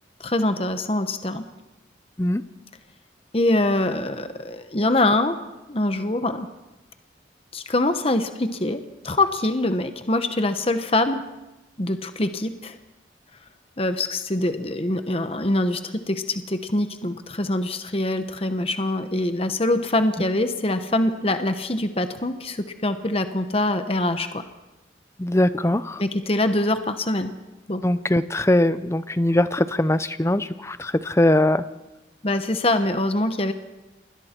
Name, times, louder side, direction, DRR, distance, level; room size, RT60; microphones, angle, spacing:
voice 1, 0.2-1.4 3.3-5.4 5.7-6.5 7.5-11.2 11.8-12.7 13.8-24.4 26.0-27.3 27.7-27.8 32.2-33.5, left 1 dB, 30° left, 9 dB, 1.0 m, -24 dB
voice 2, 25.2-26.0 27.8-31.6, left 1 dB, 15° left, 14 dB, 0.6 m, -21 dB
27.5 x 21.0 x 4.5 m, 1.0 s
head